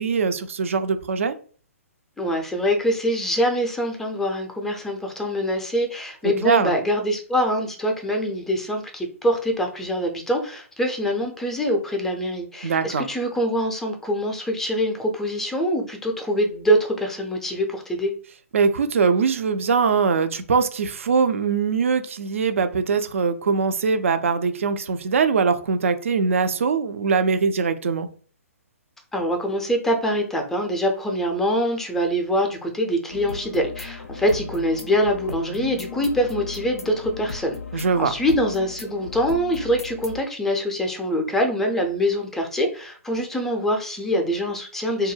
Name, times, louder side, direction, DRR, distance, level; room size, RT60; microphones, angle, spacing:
voice 1, 0.0-1.4 6.4-6.7 12.6-13.0 18.5-28.1 37.7-38.1, right 5 dB, 60° right, 9 dB, 0.4 m, -22 dB
voice 2, 2.2-18.1 29.1-45.1, equal, 5° left, 3 dB, 0.4 m, -24 dB
sound 1, 33.1-40.2, left 3 dB, 80° left, 0.4 m, -36 dB
2.2 x 2.1 x 3.2 m, 0.41 s
figure-of-eight pair, 125°, 8 cm